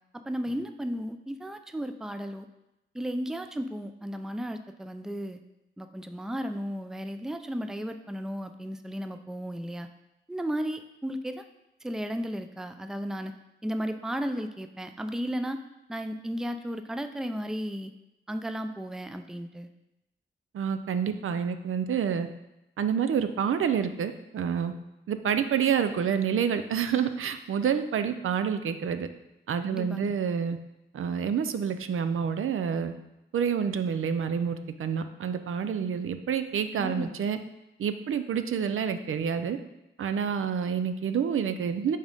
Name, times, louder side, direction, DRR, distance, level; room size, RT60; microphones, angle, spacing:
voice 1, 0.1-2.5 2.9-5.4 5.8-9.9 10.3-11.4 11.8-13.3 13.6-15.6 15.9-17.9 18.3-19.7 29.7-30.1 36.8-37.1, equal, 5° right, 8 dB, 0.3 m, -34 dB
voice 2, 20.5-22.3 22.8-24.7 25.1-29.1 29.5-30.6 30.9-32.9 33.3-37.4 37.8-39.6 40.0-42.0, right 7 dB, 90° right, 10 dB, 0.4 m, -28 dB
5.4 x 3.6 x 5.2 m, 0.92 s
wide cardioid pair, 95°, 21 cm